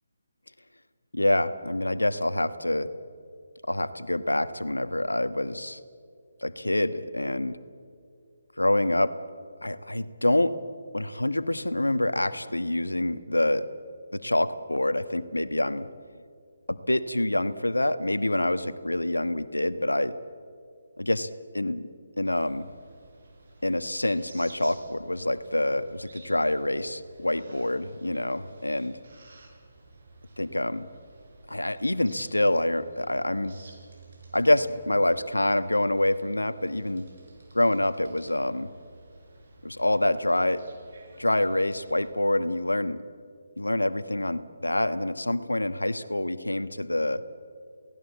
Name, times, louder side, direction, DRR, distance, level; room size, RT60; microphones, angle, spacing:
voice 1, 1.1-2.9 3.6-5.8 6.4-7.6 8.6-9.2 9.6-10.6 10.9-13.7 14.1-15.9 16.7-20.2 21.0-21.3 21.5-21.9 22.2-22.7 23.6-29.0 30.4-30.9 31.5-33.6 34.3-37.1 37.5-38.7 39.6-40.6 41.2-43.0 43.6-47.2, left 1 dB, 85° left, 12 dB, 1.3 m, -26 dB
sound 1, 22.2-42.1, right 3 dB, 55° right, 6.8 m, -53 dB
29.0 x 18.5 x 8.4 m, 2.2 s
figure-of-eight pair, 150°, 0 cm